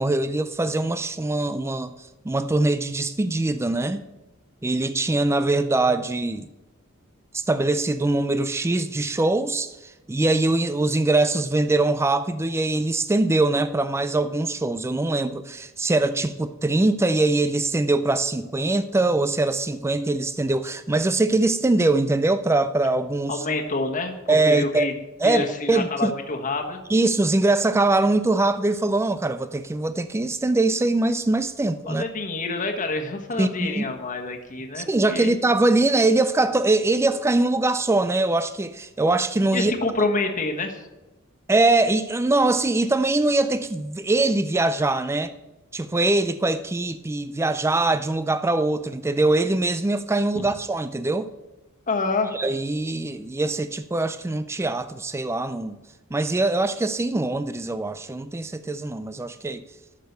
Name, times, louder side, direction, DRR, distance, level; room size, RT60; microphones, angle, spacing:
voice 1, 0.0-1.9 2.3-4.0 4.6-6.5 7.3-23.4 24.3-24.9 25.2-26.1 26.9-32.0 33.4-33.9 34.8-39.7 41.5-45.3 45.7-51.3 52.3-55.8 56.1-59.6, right 2 dB, 10° right, 0.3 m, -22 dB
voice 2, 23.3-24.9 25.2-26.8 31.9-35.3 39.5-40.8 50.3-50.4 51.9-52.3, left 3 dB, 40° left, 1.3 m, -27 dB
12.5 x 6.5 x 6.6 m
head